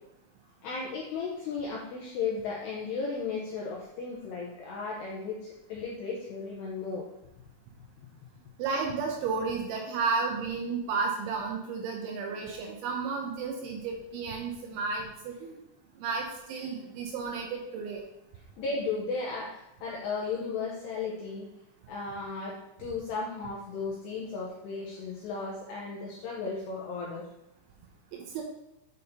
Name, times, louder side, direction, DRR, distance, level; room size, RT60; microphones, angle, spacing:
voice 1, 0.6-7.1 18.6-21.5 21.9-27.3, left 4 dB, 90° left, -4 dB, 2.4 m, -35 dB
voice 2, 8.6-15.5 16.0-18.0 28.1-28.4, right 4 dB, 80° right, 1 dB, 2.8 m, -32 dB
8.4 x 5.3 x 2.8 m, 0.84 s
omnidirectional pair, 5.9 m